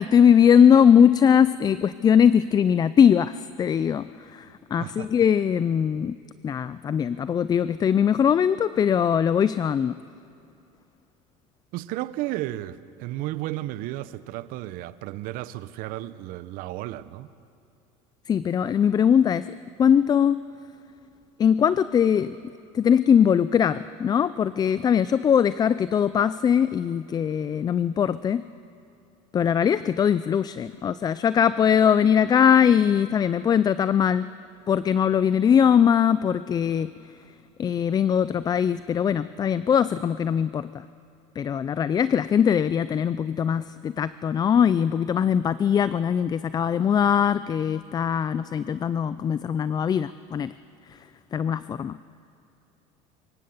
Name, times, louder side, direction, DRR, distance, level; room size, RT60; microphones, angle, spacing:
voice 1, 0.0-6.2 6.4-10.0 18.3-19.5 19.8-20.4 21.4-22.4 22.7-28.5 29.3-34.3 34.7-36.9 37.6-40.9 41.4-50.5 51.3-52.0, left 8 dB, 25° left, 0.4 m, -21 dB
voice 2, 4.8-5.1 11.7-17.3, right 15 dB, 65° right, 0.8 m, -33 dB
25.0 x 15.5 x 7.2 m
supercardioid pair, 120°, 16 cm